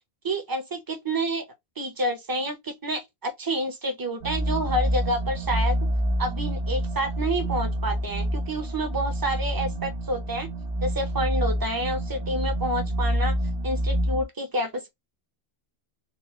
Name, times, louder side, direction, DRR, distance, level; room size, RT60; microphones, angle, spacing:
voice 1, 0.2-1.4 1.8-5.8 6.2-10.5 10.8-13.3 13.6-14.9, right 1 dB, 20° right, 0.9 m, -29 dB
sound 1, 4.2-14.2, right 1 dB, 65° right, 1.1 m, -27 dB
4.3 x 2.2 x 3.1 m
omnidirectional pair, 1.1 m